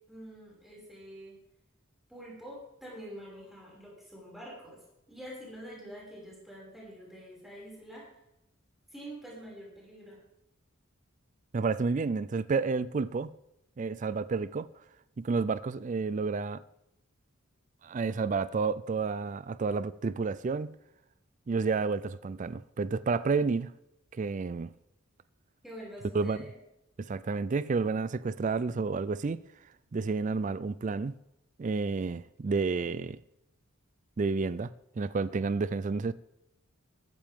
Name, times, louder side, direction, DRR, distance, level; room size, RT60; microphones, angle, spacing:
voice 1, 0.1-1.4 2.1-4.8 5.1-8.1 8.9-10.2 25.6-26.5, equal, ahead, 5.7 m, -46 dB
voice 2, 11.5-13.3 13.8-14.7 15.2-16.6 17.8-20.7 21.5-23.7 24.1-24.7 26.1-26.5 27.0-29.4 29.9-31.1 31.6-33.2 34.2-36.1, right 4 dB, 35° right, 0.3 m, -30 dB
14.5 x 13.5 x 3.6 m
head